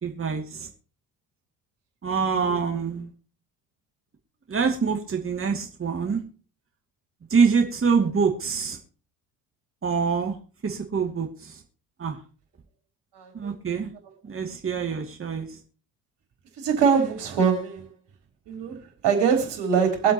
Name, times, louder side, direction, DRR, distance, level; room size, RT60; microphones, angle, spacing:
voice 1, 0.0-0.7 2.0-3.1 4.5-6.2 7.3-8.8 9.8-10.4 10.6-11.6 12.0-12.2 13.3-13.9 14.2-15.6, right 5 dB, 30° right, 2.5 m, -25 dB
voice 2, 13.1-13.5 16.6-17.9 18.5-20.1, right 6 dB, 60° right, 4.1 m, -23 dB
23.5 x 7.9 x 3.0 m
hypercardioid pair, 65°, 46 cm